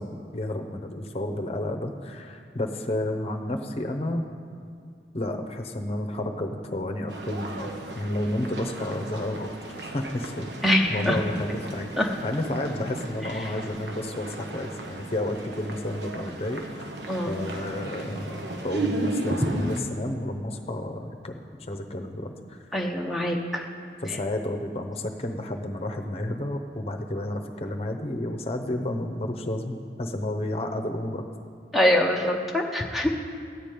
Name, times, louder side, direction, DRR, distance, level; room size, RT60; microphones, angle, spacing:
voice 1, 0.0-4.2 5.1-9.5 9.9-16.9 17.3-21.4 21.7-22.6 24.0-31.2, left 1 dB, 35° left, 4 dB, 0.8 m, -31 dB
sound 1, 7.1-19.8, right 2 dB, 80° right, 1.2 m, -35 dB
voice 2, 10.6-11.2 12.0-12.1 17.1-17.4 22.7-23.7 31.7-33.1, left 1 dB, ahead, 1 dB, 0.7 m, -24 dB
13.5 x 5.1 x 9.2 m, 2.4 s
head